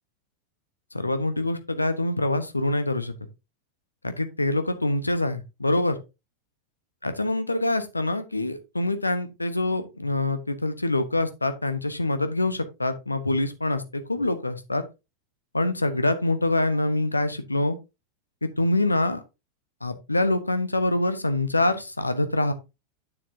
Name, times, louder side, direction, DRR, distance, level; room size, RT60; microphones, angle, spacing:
voice 1, 0.9-3.1 4.0-6.0 7.0-14.8 15.5-17.8 18.4-19.2 19.8-22.5, left 2 dB, 80° left, 10 dB, 1.1 m, -25 dB
9.4 x 7.2 x 2.7 m, 0.25 s
figure-of-eight pair, 90°, 0 cm